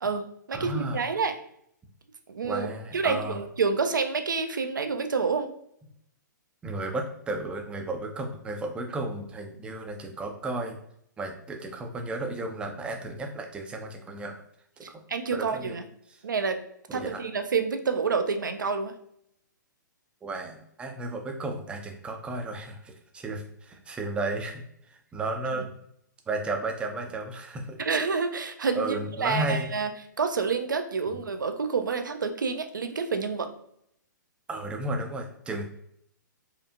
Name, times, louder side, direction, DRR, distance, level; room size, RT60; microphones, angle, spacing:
voice 1, 0.0-1.3 2.3-2.7 2.9-5.5 14.8-15.8 16.2-16.6 16.9-18.9 27.8-29.9 30.2-33.5, right 5 dB, 75° right, 7 dB, 0.5 m, -28 dB
voice 2, 0.5-1.1 2.4-3.4 6.6-10.8 11.2-14.4 14.8-14.9 15.3-15.8 16.1-16.2 16.9-17.2 20.2-24.6 24.9-25.7 26.3-27.8 28.7-29.7 34.5-35.7, right 2 dB, 10° right, 3 dB, 0.4 m, -33 dB
4.3 x 2.4 x 2.4 m, 0.73 s
figure-of-eight pair, 120°, 11 cm